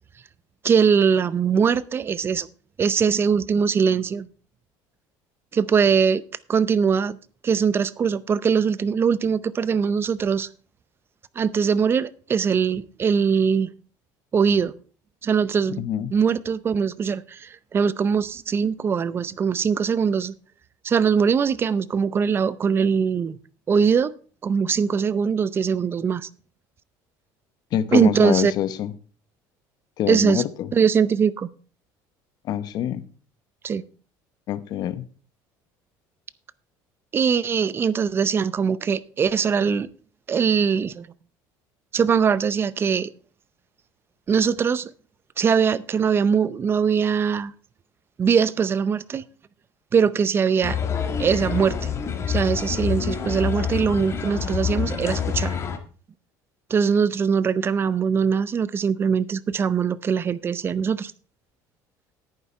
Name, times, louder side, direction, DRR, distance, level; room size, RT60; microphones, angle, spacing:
voice 1, 0.6-2.5 2.8-4.3 5.5-6.2 6.5-7.2 7.4-10.5 11.4-13.7 14.3-14.7 15.2-15.8 16.1-20.3 20.8-23.4 23.7-24.1 24.4-26.3 27.9-28.5 30.1-30.4 30.7-31.5 33.6-33.8 37.1-39.9 40.3-41.1 41.9-43.1 44.3-44.9 45.4-47.5 48.2-49.2 49.9-50.8 51.2-51.9 52.3-55.6 56.7-61.1, right 6 dB, 30° right, 0.6 m, -21 dB
voice 2, 15.8-16.1 27.7-28.9 30.0-30.7 32.5-33.0 34.5-35.1, left 11 dB, 55° left, 0.9 m, -25 dB
sound 1, 50.6-55.8, left 7 dB, 35° left, 1.8 m, -27 dB
10.5 x 9.3 x 4.3 m
cardioid pair, 135°, 8 cm